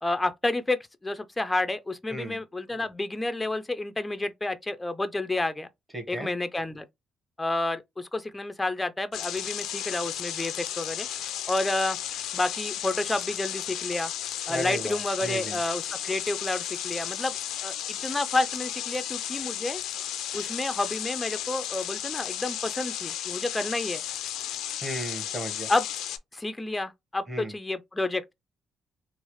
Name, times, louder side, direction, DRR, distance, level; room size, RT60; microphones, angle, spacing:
voice 1, 0.0-5.7 6.1-6.9 7.4-11.1 11.5-12.0 12.3-14.1 14.5-17.3 17.6-19.8 20.3-24.0 25.7-25.9 26.3-28.3, left 2 dB, 15° left, 0.4 m, -30 dB
voice 2, 2.1-2.4 5.9-6.3 14.5-15.6 24.8-25.7 27.3-27.5, equal, 20° right, 1.0 m, -35 dB
sound 1, 9.1-26.2, left 11 dB, 85° left, 0.3 m, -34 dB
3.1 x 2.0 x 3.0 m
cardioid pair, 90°, 0 cm